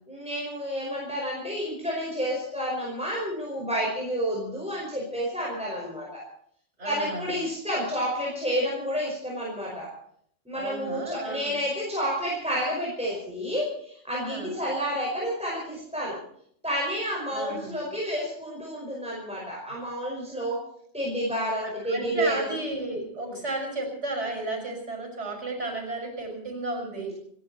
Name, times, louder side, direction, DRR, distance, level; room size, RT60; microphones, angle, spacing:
voice 1, 0.1-6.2 6.8-9.9 10.5-16.2 16.6-20.6 20.9-22.5 23.3-23.4, equal, 5° right, -4 dB, 5.3 m, -30 dB
voice 2, 6.8-7.3 10.5-11.6 14.3-14.5 17.3-17.8 21.6-27.2, right 2 dB, 80° right, 2 dB, 6.3 m, -33 dB
30.0 x 11.0 x 4.3 m, 0.65 s
omnidirectional pair, 1.2 m